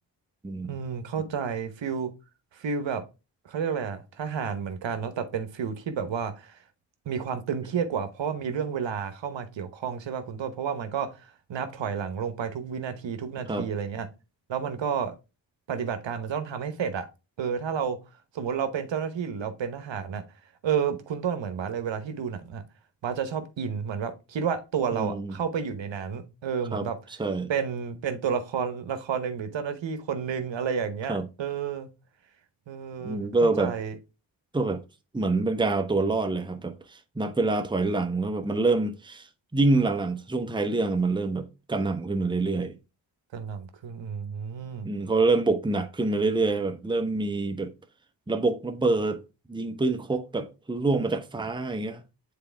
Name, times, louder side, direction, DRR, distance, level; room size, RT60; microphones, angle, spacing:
voice 1, 0.6-2.1 2.5-3.0 3.5-6.6 7.1-14.1 14.5-15.1 15.7-17.1 17.4-18.0 18.3-20.2 20.6-22.6 23.0-27.0 27.5-31.9 32.7-33.2 33.6-34.0 43.3-44.9, right 7 dB, 65° right, 1.0 m, -31 dB
voice 2, 24.9-25.3 26.7-26.9 27.2-27.5 31.1-31.2 33.0-33.7 34.5-34.8 35.1-39.3 39.5-42.8 44.8-47.7 48.3-49.2 49.5-52.0, right 3 dB, 10° right, 0.9 m, -26 dB
6.9 x 4.2 x 3.3 m
supercardioid pair, 45°, 49 cm